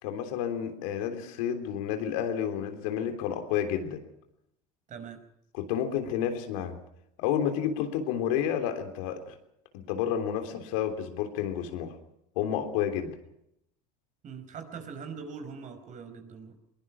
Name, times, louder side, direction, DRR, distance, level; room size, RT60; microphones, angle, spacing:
voice 1, 0.0-4.0 5.5-6.8 7.2-9.3 9.7-11.9 12.3-13.2, left 9 dB, 75° left, 7 dB, 3.3 m, -30 dB
voice 2, 4.9-5.2 14.2-16.6, right 6 dB, 45° right, 8 dB, 5.1 m, -42 dB
22.0 x 21.5 x 6.0 m, 0.79 s
hypercardioid pair, 90°, 18 cm